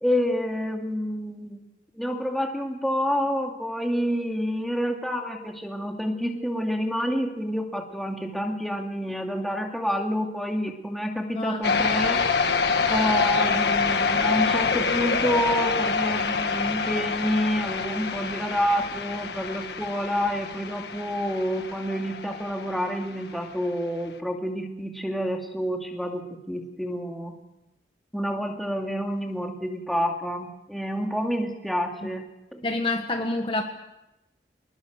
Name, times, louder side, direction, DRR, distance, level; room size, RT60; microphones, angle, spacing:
voice 1, 0.0-1.6 1.9-12.2 12.9-27.4 28.1-32.2 32.5-32.6, equal, ahead, 1 dB, 2.5 m, -28 dB
sound 1, 11.6-23.1, left 5 dB, 70° left, 1.6 m, -26 dB
voice 2, 32.6-33.6, left 2 dB, 30° left, 3 dB, 1.6 m, -27 dB
26.0 x 20.5 x 6.6 m, 0.92 s
head